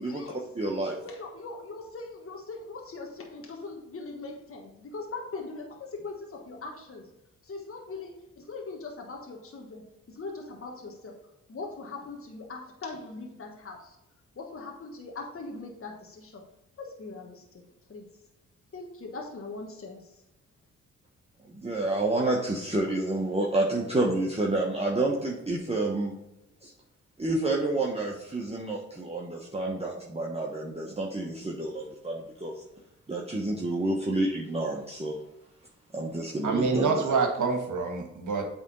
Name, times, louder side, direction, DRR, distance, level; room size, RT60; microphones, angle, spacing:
voice 1, 0.0-0.5 1.0-7.1 7.4-11.2 11.5-14.0 14.3-16.4 16.8-18.1 18.7-20.2, left 3 dB, 40° left, 1 dB, 1.4 m, -41 dB
voice 2, 0.6-1.0 21.5-26.1 26.6-26.7 27.2-32.6 33.1-35.2 35.9-37.1, right 2 dB, 15° right, -2 dB, 1.2 m, -29 dB
voice 3, 36.4-38.4, right 4 dB, 60° right, 4 dB, 1.5 m, -26 dB
8.2 x 3.6 x 4.0 m, 0.93 s
hypercardioid pair, 40°, 35 cm